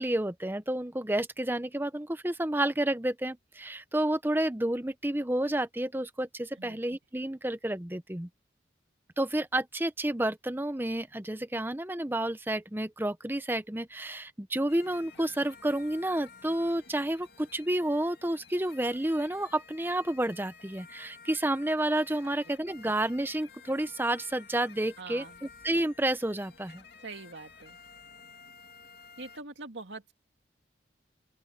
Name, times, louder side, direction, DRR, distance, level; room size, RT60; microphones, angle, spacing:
voice 1, 0.0-8.3 9.2-26.8, right 1 dB, 10° right, 0.7 m, -30 dB
sound 1, 14.7-29.4, left 5 dB, 60° left, 2.4 m, -53 dB
voice 2, 25.0-25.4 27.0-27.8 29.2-30.1, right 3 dB, 80° right, 2.4 m, -44 dB
open air
head